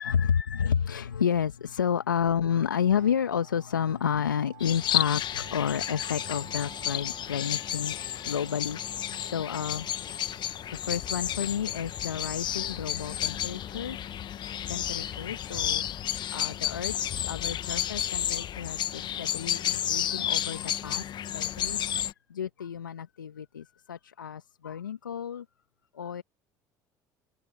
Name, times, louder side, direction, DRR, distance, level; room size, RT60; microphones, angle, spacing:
voice 1, 0.0-9.9 10.7-14.2 14.7-21.8 22.3-25.4 25.9-26.2, left 8 dB, 85° left, 1.5 m, -31 dB
sound 1, 2.6-15.7, right 19 dB, 75° right, 2.2 m, -54 dB
sound 2, 4.6-22.1, left 10 dB, 45° left, 1.6 m, -32 dB
hypercardioid pair, 65°, 10 cm